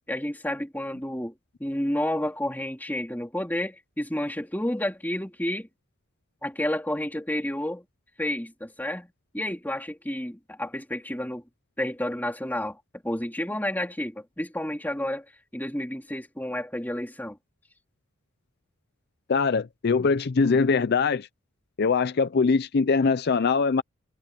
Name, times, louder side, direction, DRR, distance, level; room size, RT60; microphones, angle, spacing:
voice 1, 0.1-1.3 1.6-5.7 6.4-7.8 8.2-11.4 11.8-15.2 15.5-17.4, left 1 dB, 10° left, 2.9 m, -30 dB
voice 2, 19.3-21.3 21.8-23.8, left 4 dB, 55° left, 0.5 m, -22 dB
head